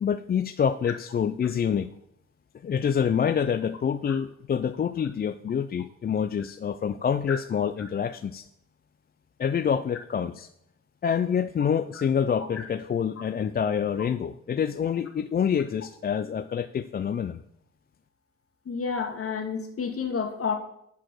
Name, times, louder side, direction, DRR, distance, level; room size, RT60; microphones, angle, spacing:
voice 1, 0.0-1.9 2.6-8.4 9.4-10.5 11.0-17.4, left 7 dB, 30° left, 11 dB, 0.4 m, -27 dB
voice 2, 18.7-20.5, left 5 dB, 50° left, 4 dB, 1.9 m, -30 dB
10.5 x 4.9 x 6.2 m, 0.75 s
cardioid pair, 90°, 30 cm